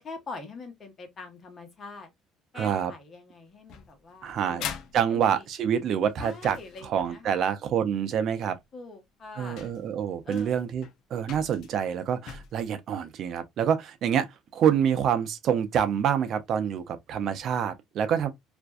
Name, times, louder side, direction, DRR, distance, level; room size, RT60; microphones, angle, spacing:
voice 1, 0.0-2.1 2.5-4.7 5.1-5.4 6.2-7.5 8.7-9.6 10.2-10.6, left 3 dB, 35° left, 1.0 m, -43 dB
voice 2, 2.5-2.9 4.2-4.6 4.9-6.6 6.8-8.6 9.4-10.9 11.1-18.3, right 8 dB, 55° right, 0.5 m, -27 dB
sound 1, 3.7-7.3 8.6-8.7 9.3-9.4 9.6-12.7, left 8 dB, 65° left, 0.4 m, -42 dB
2.5 x 2.2 x 2.2 m
cardioid pair, 110°, 0 cm